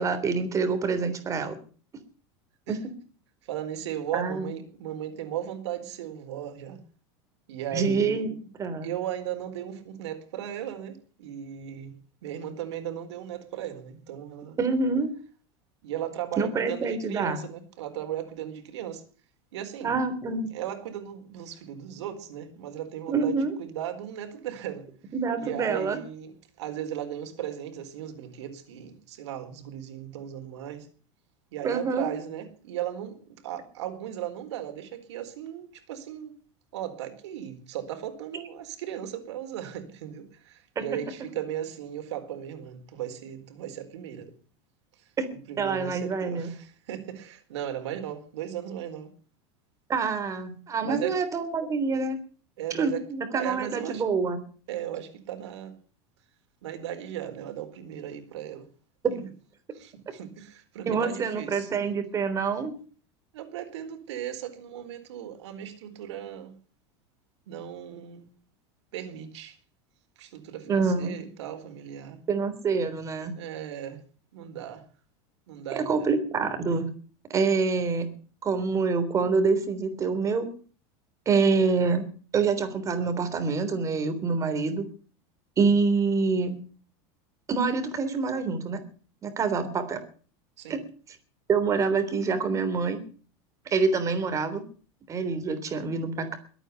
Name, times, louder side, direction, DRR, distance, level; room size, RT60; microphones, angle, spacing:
voice 1, 0.0-1.6 2.7-2.8 4.1-4.5 7.7-8.3 8.6-8.9 14.6-15.1 16.4-17.4 19.8-20.6 23.1-23.5 25.1-26.0 31.6-32.1 40.8-40.9 45.2-45.3 45.6-46.5 49.9-52.2 52.7-54.4 60.9-62.7 70.7-71.2 72.3-73.4 75.7-76.9 77.3-78.1 78.4-80.5 81.3-82.1 82.3-84.8 85.6-86.5 87.5-88.8 89.2-90.0 90.7-90.8 91.5-93.0 93.7-94.6 95.1-96.4, right 4 dB, 20° right, 3.4 m, -26 dB
voice 2, 3.4-6.8 7.5-8.5 8.8-11.9 12.2-14.6 15.8-19.0 19.5-20.0 20.5-24.9 25.4-30.9 31.5-36.3 36.7-44.3 45.5-49.1 50.8-51.2 52.6-53.0 53.3-54.0 54.7-55.7 56.6-58.7 59.1-59.3 59.7-61.7 63.3-66.5 67.5-68.3 68.9-69.6 70.2-72.2 73.4-74.0 74.3-74.9 75.5-76.1 90.6-90.8, right 10 dB, 90° right, 4.2 m, -36 dB
22.0 x 9.2 x 7.0 m
supercardioid pair, 155°, 14 cm